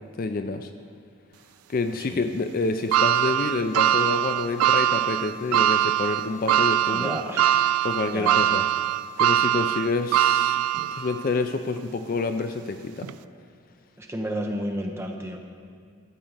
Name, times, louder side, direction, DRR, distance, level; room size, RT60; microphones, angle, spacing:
voice 1, 0.2-0.7 1.7-7.2 7.8-8.6 9.2-10.6 10.9-13.1, left 3 dB, 40° left, 8 dB, 0.4 m, -28 dB
sound 1, 2.9-11.3 11.8-11.9 13.0-13.1, right 12 dB, 85° right, 0.3 m, -22 dB
voice 2, 6.9-7.6 8.1-8.6 14.0-15.4, right 1 dB, 10° right, 2 dB, 0.7 m, -32 dB
12.5 x 4.5 x 7.9 m, 2.2 s
head